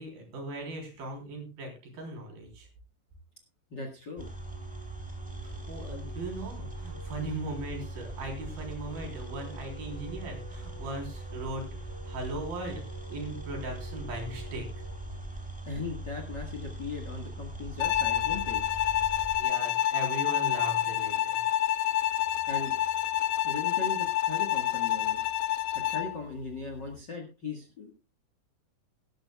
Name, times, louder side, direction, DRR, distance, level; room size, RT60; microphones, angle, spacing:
voice 1, 0.0-2.7 5.4-14.7 19.4-21.4, right 2 dB, 70° right, 2 dB, 5.5 m, -39 dB
voice 2, 3.7-4.3 15.6-18.6 22.5-22.8 23.4-25.2 25.9-28.0, left 3 dB, 45° left, 4 dB, 1.5 m, -38 dB
sound 1, 4.0-16.6, equal, 40° right, 7.1 m, -52 dB
sound 2, 4.2-19.4, right 2 dB, 5° right, 2.0 m, -41 dB
Bowed string instrument, 17.8-26.2, left 12 dB, 80° left, 2.6 m, -28 dB
18.0 x 12.0 x 2.3 m, 0.30 s
omnidirectional pair, 4.3 m